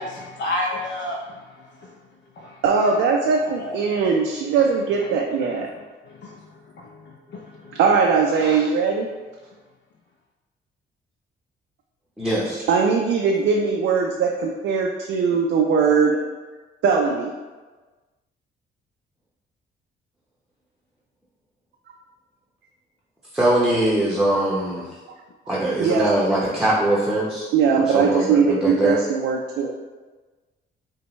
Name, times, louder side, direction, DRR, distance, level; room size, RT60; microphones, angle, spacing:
voice 1, 0.0-1.4 2.4-2.5 3.5-4.0 5.5-5.6 6.0-6.4 6.7-7.8, left 1 dB, 60° left, -1 dB, 0.5 m, -31 dB
voice 2, 2.6-5.7 7.8-9.1 12.7-16.2 16.8-17.3 25.8-26.1 27.5-29.7, right 5 dB, 85° right, 0 dB, 0.4 m, -20 dB
voice 3, 12.2-12.6 23.3-24.9 25.5-27.5 27.9-29.0, right 1 dB, ahead, -7 dB, 0.7 m, -21 dB
5.2 x 2.2 x 3.1 m, 1.3 s
cardioid pair, 90°, 20 cm